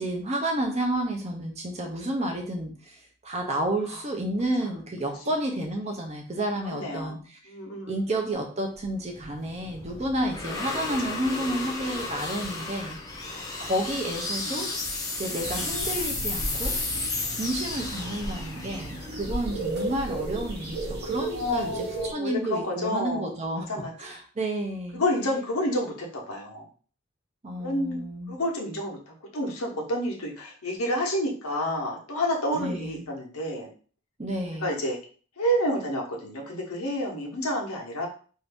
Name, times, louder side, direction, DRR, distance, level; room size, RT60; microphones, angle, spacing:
voice 1, 0.0-7.4 7.9-13.3 13.6-14.7 15.2-16.7 17.3-21.8 22.1-23.7 24.0-25.0 27.4-28.4 32.5-33.1 34.2-34.7, right 1 dB, 30° right, 2 dB, 0.5 m, -31 dB
voice 2, 6.6-7.2 7.5-8.0 13.3-13.4 14.4-14.6 15.4-15.7 21.3-23.9 24.9-26.7 27.6-28.0 28.3-33.7 34.6-35.0 35.4-38.1, equal, 90° left, -1 dB, 1.0 m, -29 dB
sound 1, 8.8-20.1, left 3 dB, 15° left, 0.5 m, -33 dB
sound 2, 15.4-22.1, right 2 dB, 50° right, 0.9 m, -34 dB
2.7 x 2.5 x 3.4 m, 0.40 s
head